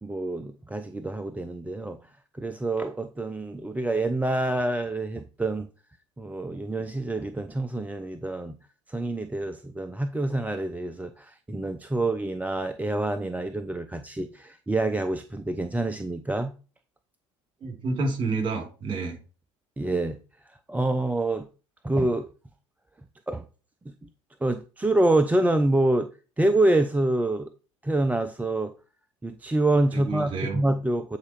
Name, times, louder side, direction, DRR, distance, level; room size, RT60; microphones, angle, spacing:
voice 1, 0.0-2.0 2.4-5.7 6.2-8.6 8.9-16.5 19.8-20.2 20.5-21.5 21.8-22.3 23.3-23.4 24.4-26.1 26.4-27.5 27.8-28.7 29.2-31.2, right 2 dB, 10° right, 0.6 m, -26 dB
voice 2, 17.6-19.2 29.9-30.6, right 3 dB, 30° right, 3.7 m, -29 dB
8.4 x 4.2 x 4.6 m
figure-of-eight pair, 65°, 16 cm